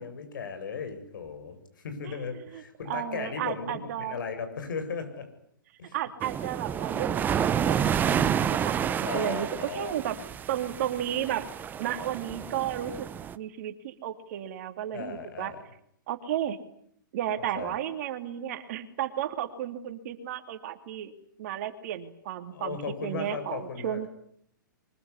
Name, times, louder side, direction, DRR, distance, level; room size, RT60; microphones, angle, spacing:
voice 1, 0.0-5.3 5.8-6.0 9.0-9.9 14.9-15.6 17.4-17.7 22.5-24.1, left 5 dB, 65° left, 8 dB, 7.6 m, -36 dB
voice 2, 2.9-4.2 5.9-7.8 8.1-9.5 9.7-10.2 10.5-11.5 11.8-13.1 13.3-15.5 16.1-16.6 17.1-21.1 21.4-22.8 23.0-24.1, right 11 dB, 50° right, 8 dB, 2.9 m, -33 dB
sound 1, 6.2-13.4, right 8 dB, 15° right, 1.0 m, -29 dB
23.5 x 22.5 x 9.9 m, 0.69 s
hypercardioid pair, 135°, 11 cm